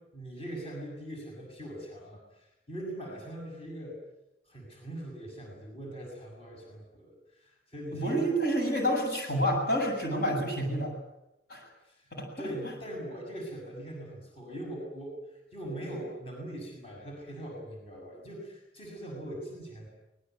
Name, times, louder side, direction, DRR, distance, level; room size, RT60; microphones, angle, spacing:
voice 1, 0.0-4.0 4.5-8.3 11.8-12.1 12.4-15.2 15.5-19.9, right 1 dB, 30° left, 0 dB, 6.7 m, -41 dB
voice 2, 7.9-11.0 11.5-11.6 12.1-12.3, equal, 55° left, 2 dB, 7.6 m, -28 dB
25.0 x 21.0 x 9.3 m, 0.90 s
head